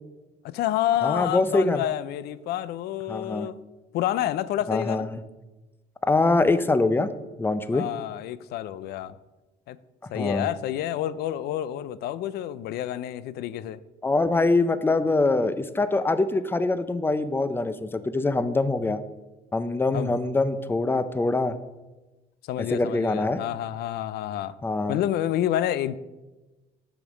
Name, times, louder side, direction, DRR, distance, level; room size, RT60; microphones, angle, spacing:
voice 1, 0.4-3.6 3.9-5.1 7.7-9.2 9.7-9.8 10.1-13.8 19.9-20.1 22.4-24.5 24.9-26.0, left 12 dB, 75° left, 0.4 m, -29 dB
voice 2, 1.0-1.8 3.1-3.5 4.7-5.2 6.0-7.1 7.4-7.8 10.1-10.5 14.0-19.0 19.5-21.5 22.7-23.4 24.6-25.0, left 3 dB, 15° left, 0.5 m, -24 dB
6.8 x 5.1 x 6.2 m
cardioid pair, 110°, 17 cm